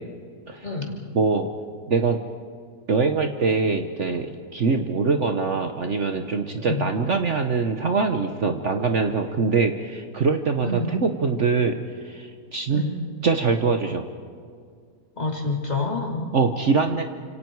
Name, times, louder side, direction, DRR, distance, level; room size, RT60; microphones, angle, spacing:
voice 1, 0.6-0.9 6.6-6.8 10.6-10.9 12.7-12.9 15.2-16.3, left 3 dB, 25° left, 0 dB, 3.1 m, -27 dB
voice 2, 1.1-1.5 1.9-2.2 2.9-11.8 12.0-12.8 13.2-14.1 16.3-17.0, right 4 dB, 50° right, 6 dB, 1.3 m, -23 dB
29.5 x 27.0 x 4.7 m, 2.1 s
omnidirectional pair, 1.7 m